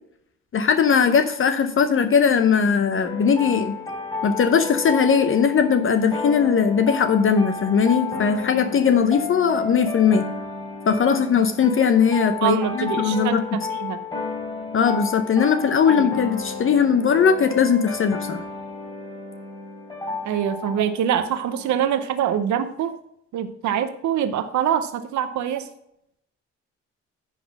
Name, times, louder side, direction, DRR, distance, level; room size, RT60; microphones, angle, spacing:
voice 1, 0.5-3.8 4.2-10.2 10.8-13.4 14.7-18.4, left 6 dB, 45° left, 9 dB, 0.7 m, -19 dB
sound 1, 3.0-22.0, left 4 dB, 15° left, 3.6 m, -32 dB
voice 2, 12.4-13.4 13.8-14.0 16.0-16.1 20.2-23.0 23.3-25.7, right 9 dB, 70° right, 9 dB, 0.8 m, -24 dB
10.0 x 4.0 x 5.9 m, 0.75 s
cardioid pair, 90°, 30 cm